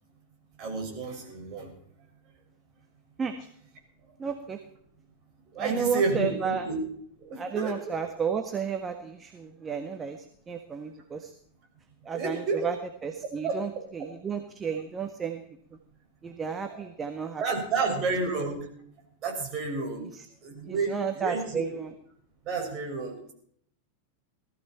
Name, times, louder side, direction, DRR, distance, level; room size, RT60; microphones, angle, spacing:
voice 1, 0.6-1.7 5.5-6.8 7.3-8.0 12.1-12.7 13.4-13.6 16.7-16.8 17.4-18.7 19.2-20.1 20.4-21.6 22.5-23.3, right 4 dB, 35° right, 1 dB, 6.2 m, -30 dB
voice 2, 4.2-4.6 5.6-6.7 7.4-11.3 12.0-15.4 16.2-17.4 17.9-18.0 20.0-20.3 20.6-21.9, right 6 dB, 20° right, 6 dB, 1.4 m, -32 dB
19.5 x 14.5 x 4.5 m, 0.64 s
figure-of-eight pair, 90°, 0 cm